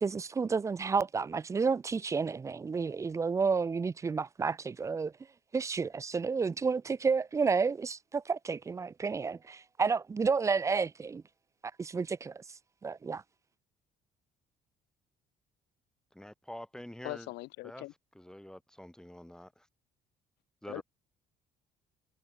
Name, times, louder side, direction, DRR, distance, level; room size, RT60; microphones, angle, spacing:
voice 1, 0.0-5.1 5.5-11.2 11.8-12.4 12.8-13.2, right 5 dB, 20° right, 0.3 m, -31 dB
voice 2, 16.2-17.3 17.6-17.9 18.2-19.7 20.6-20.8, equal, 5° left, 1.8 m, -46 dB
voice 3, 17.0-17.9 20.7-20.8, left 20 dB, 85° left, 0.6 m, -41 dB
cardioid pair, 110°, 17 cm